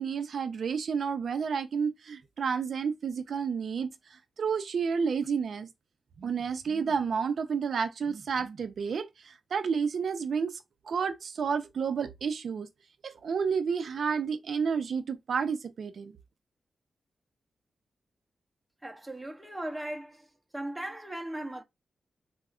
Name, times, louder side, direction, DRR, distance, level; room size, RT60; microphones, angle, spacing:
voice 1, 0.0-3.9 4.4-5.7 6.2-10.6 10.9-12.7 13.0-16.1, right 6 dB, 70° right, 0.4 m, -30 dB
voice 2, 18.8-20.3 20.5-21.6, right 1 dB, 10° right, 0.7 m, -38 dB
4.8 x 2.1 x 2.3 m
cardioid pair, 90°, 0 cm